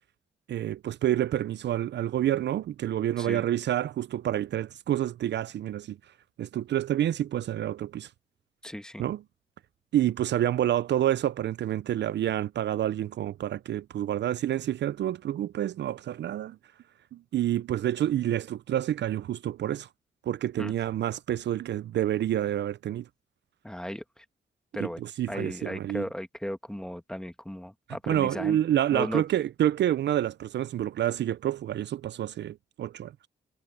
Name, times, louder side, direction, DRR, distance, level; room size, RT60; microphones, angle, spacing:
voice 1, 0.5-6.0 6.4-8.1 9.0-9.2 9.9-16.6 17.1-19.9 20.3-23.1 24.8-26.1 28.1-33.3, right 12 dB, 70° right, 0.4 m, -28 dB
voice 2, 8.6-9.0 20.6-20.7 23.6-24.2 24.7-25.0 25.3-28.6 28.9-29.2, equal, 5° left, 1.5 m, -36 dB
wide cardioid pair, 120°, 19 cm